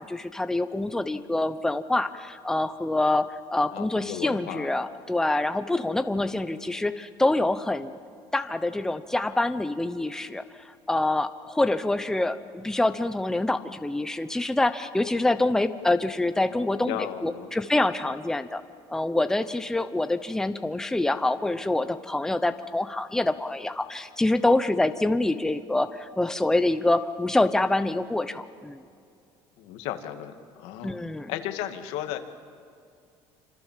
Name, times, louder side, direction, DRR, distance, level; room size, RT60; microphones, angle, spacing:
voice 1, 0.0-7.9 8.3-10.4 10.9-18.6 18.9-28.8 30.8-31.3, left 2 dB, 5° left, 10 dB, 0.9 m, -26 dB
voice 2, 3.7-4.7 16.5-17.5 29.6-31.0 31.3-32.2, left 12 dB, 90° left, 7 dB, 2.1 m, -35 dB
27.5 x 26.0 x 7.6 m, 2.4 s
cardioid pair, 140°, 10 cm